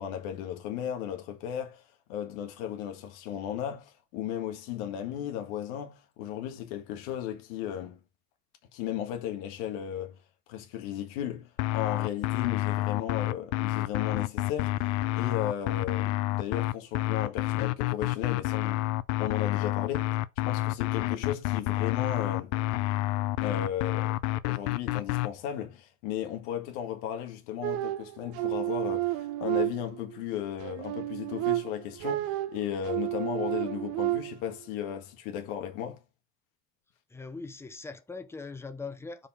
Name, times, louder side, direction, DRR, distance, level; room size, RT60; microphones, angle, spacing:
voice 1, 0.0-1.8 2.1-8.0 8.7-10.2 10.5-14.9 15.1-18.9 19.2-20.2 20.5-22.5 23.4-24.2 24.4-36.0, left 10 dB, 80° left, 1.8 m, -35 dB
sound 1, 11.6-25.3, left 17 dB, 65° left, 0.6 m, -29 dB
sound 2, 27.6-30.2 30.6-34.5, right 17 dB, 75° right, 1.0 m, -31 dB
voice 2, 37.1-39.3, left 4 dB, 5° left, 0.6 m, -41 dB
5.0 x 4.6 x 6.0 m
cardioid pair, 150°, 40 cm